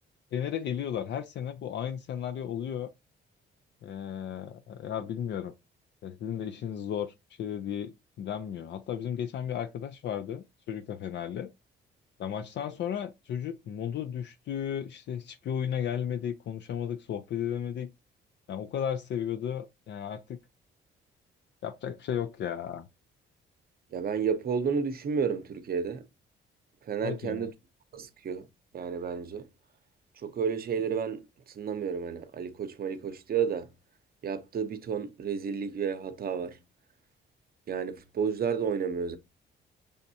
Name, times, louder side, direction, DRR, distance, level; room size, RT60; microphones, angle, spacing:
voice 1, 0.3-2.9 3.8-5.5 6.0-7.1 7.4-11.5 12.2-17.9 18.5-20.4 21.6-22.9 27.0-27.5, left 9 dB, 65° left, 0.5 m, -34 dB
voice 2, 23.9-26.0 26.9-27.5 27.9-28.4 28.7-29.5 30.2-31.2 31.6-33.7 34.2-36.6 37.7-39.2, right 6 dB, 50° right, 0.7 m, -31 dB
5.1 x 3.5 x 2.7 m
cardioid pair, 90°, 20 cm